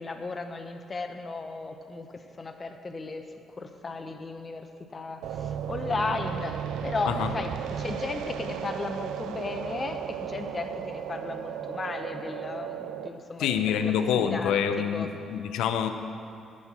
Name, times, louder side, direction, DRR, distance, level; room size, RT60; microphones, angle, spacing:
voice 1, 0.0-3.2 3.6-6.6 6.8-13.6 13.8-15.1, left 3 dB, 30° left, 6 dB, 0.8 m, -35 dB
sound 1, 5.2-13.1, right 9 dB, 85° right, 0.4 m, -35 dB
voice 2, 13.4-15.9, left 8 dB, 90° left, 8 dB, 0.6 m, -26 dB
9.6 x 6.5 x 7.1 m, 2.5 s
cardioid pair, 90°, 0 cm